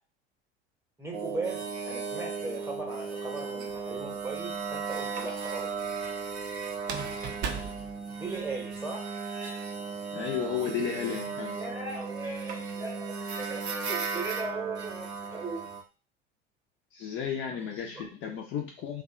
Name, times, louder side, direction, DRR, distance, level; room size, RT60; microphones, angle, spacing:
voice 1, 1.0-5.7 8.1-9.1 11.5-15.7 17.9-18.1, right 3 dB, 10° right, -1 dB, 0.9 m, -38 dB
sound 1, 1.1-15.8, right 5 dB, 85° right, 0.5 m, -36 dB
sound 2, 3.7-4.3 6.8-8.8, right 6 dB, 35° right, 0.4 m, -38 dB
voice 2, 10.1-11.6 16.9-19.0, left 7 dB, 40° left, 1 dB, 0.6 m, -33 dB
2.6 x 2.2 x 2.5 m, 0.33 s
figure-of-eight pair, 70°, 32 cm